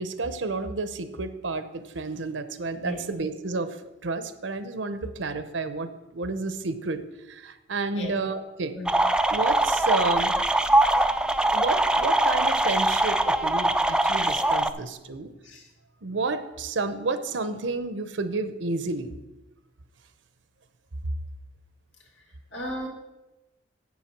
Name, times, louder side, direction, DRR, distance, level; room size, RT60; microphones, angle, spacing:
voice 1, 0.0-7.0 7.3-8.7 9.3-10.3 11.5-15.3 16.0-19.2, right 3 dB, 85° right, 11 dB, 0.8 m, -31 dB
sound 1, 8.9-14.7, right 1 dB, 5° right, 0.3 m, -22 dB
voice 2, 22.5-22.9, left 1 dB, 80° left, -1 dB, 2.5 m, -34 dB
8.1 x 7.3 x 6.0 m, 1.0 s
head